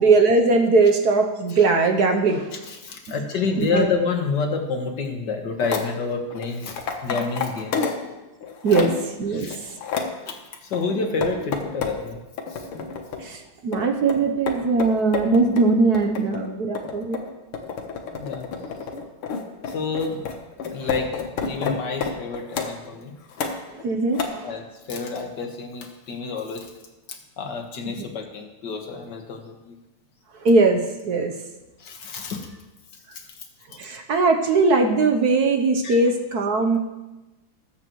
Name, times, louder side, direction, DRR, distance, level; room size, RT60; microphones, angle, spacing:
voice 1, 0.0-2.5 3.1-3.2 3.6-3.9 8.6-8.9 9.2-9.7 13.2-17.2 20.8-20.9 23.8-24.5 30.4-31.3 33.8-36.8, right 3 dB, 60° right, 4 dB, 1.1 m, -20 dB
voice 2, 2.7-7.9 8.7-8.8 9.3-9.6 10.3-12.2 12.5-12.7 18.1-18.5 19.7-20.3 20.7-21.1 21.4-23.1 24.4-26.7 27.1-29.8 31.8-32.5 33.1-33.3 35.8-36.0, left 4 dB, 55° left, 4 dB, 1.8 m, -29 dB
sound 1, 5.6-5.9 6.3-8.1 8.4-9.1 9.5-10.2 10.7-12.0 12.4-13.3 13.7-22.8 23.3-23.8 24.1-24.3, left 5 dB, 85° left, 2.0 m, -29 dB
20.0 x 8.0 x 3.1 m, 1.1 s
omnidirectional pair, 2.3 m